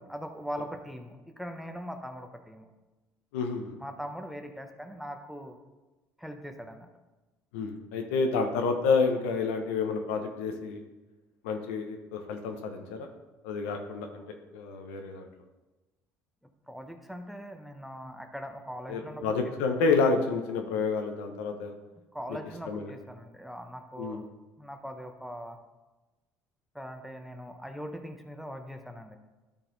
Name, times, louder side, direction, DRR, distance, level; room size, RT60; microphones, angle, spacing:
voice 1, 0.0-2.7 3.8-5.6 6.2-6.9 16.7-19.5 22.1-24.3 24.6-25.6 26.7-29.2, equal, ahead, 5 dB, 0.9 m, -41 dB
voice 2, 3.3-3.8 7.5-10.8 11.4-13.1 13.4-14.2 14.5-15.3 18.9-21.7 22.3-22.4 22.7-22.9 24.0-24.2, left 4 dB, 90° left, 4 dB, 0.9 m, -29 dB
12.0 x 4.1 x 4.0 m, 1.1 s
supercardioid pair, 80°, 7 cm